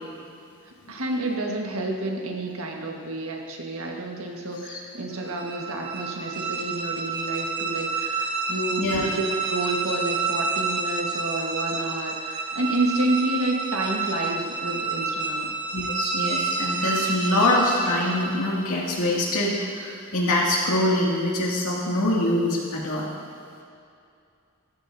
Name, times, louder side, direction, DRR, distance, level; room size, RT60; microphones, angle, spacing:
voice 1, 0.7-15.5, right 2 dB, 80° right, 0 dB, 1.6 m, -29 dB
sound 1, 5.2-18.6, right 4 dB, 55° right, 1.3 m, -29 dB
voice 2, 8.8-9.1 15.7-23.1, left 1 dB, 85° left, -4 dB, 2.4 m, -24 dB
14.5 x 13.0 x 2.8 m, 2.5 s
head